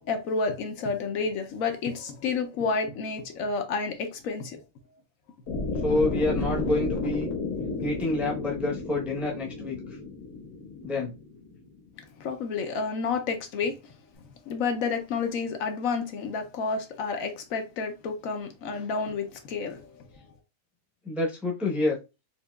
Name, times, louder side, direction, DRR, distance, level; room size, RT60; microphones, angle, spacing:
voice 1, 0.1-4.6 12.2-13.8 14.5-20.0, left 4 dB, 70° left, 1.0 m, -30 dB
sound 1, 5.5-11.6, left 3 dB, 90° left, 1.3 m, -32 dB
voice 2, 5.8-7.3 7.8-9.8 10.8-11.1 21.1-22.0, left 2 dB, ahead, 0.7 m, -27 dB
4.3 x 2.7 x 2.3 m
omnidirectional pair, 1.5 m